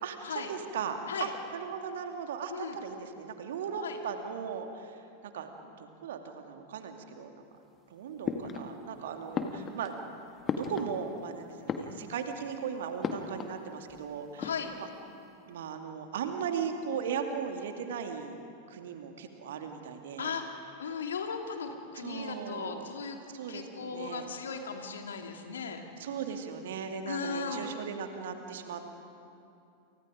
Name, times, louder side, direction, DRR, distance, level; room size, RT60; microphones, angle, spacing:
voice 1, 0.0-5.0 5.3-7.4 7.9-9.9 10.5-14.5 14.8-14.9 15.5-18.4 18.7-20.3 22.0-22.9 23.3-24.3 26.0-28.9, right 7 dB, 60° right, 5 dB, 2.4 m, -37 dB
sound 1, 8.2-9.0 9.3-11.3 11.6-12.4 13.0-13.6 13.9-14.0 14.3-15.0, left 5 dB, 25° left, 1.8 m, -36 dB
voice 2, 14.4-14.7 20.2-20.4 20.8-23.2 23.5-25.8 27.1-27.7, left 5 dB, 65° left, 4 dB, 2.7 m, -37 dB
29.5 x 29.0 x 5.1 m, 2.6 s
figure-of-eight pair, 90°, 0 cm